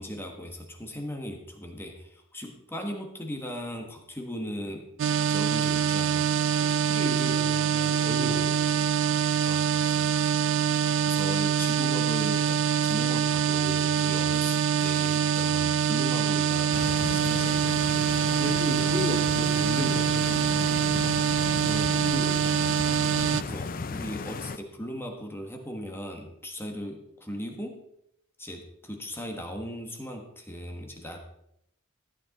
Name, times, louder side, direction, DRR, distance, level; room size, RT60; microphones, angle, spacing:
voice 1, 0.0-4.9 5.3-6.3 9.4-10.1 11.0-17.7 23.4-27.8 28.4-31.2, equal, 10° left, 2 dB, 1.4 m, -38 dB
sound 1, 5.0-23.4, right 7 dB, 60° right, 0.4 m, -25 dB
voice 2, 6.6-8.6 18.4-20.7 21.6-22.4, equal, 25° right, 4 dB, 1.3 m, -34 dB
Stream, 16.7-24.6, left 4 dB, 40° left, 0.6 m, -36 dB
14.0 x 8.4 x 4.1 m, 0.77 s
head